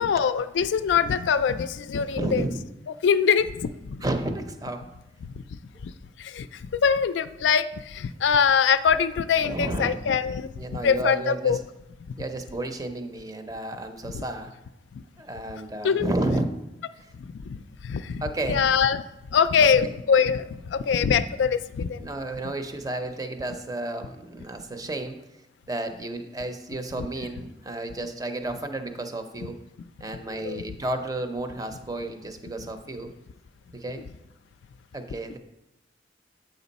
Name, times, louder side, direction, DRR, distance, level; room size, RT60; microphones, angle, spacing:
voice 1, 0.0-2.4 3.0-4.1 5.2-5.3 5.8-5.9 6.2-6.5 6.8-10.5 10.8-11.6 14.1-14.2 15.8-16.1 17.2-19.0 19.3-22.0 30.3-30.6, left 6 dB, 70° left, 12 dB, 0.3 m, -23 dB
voice 2, 2.2-2.5 4.0-4.9 9.4-10.0 10.6-11.6 12.2-14.5 15.2-16.5 17.0-17.1 18.2-18.6 19.8-20.0 22.0-25.2 25.7-29.6 30.0-33.1 33.7-34.0 34.9-35.4, right 2 dB, 20° right, 7 dB, 0.6 m, -32 dB
7.8 x 5.2 x 4.1 m, 0.91 s
head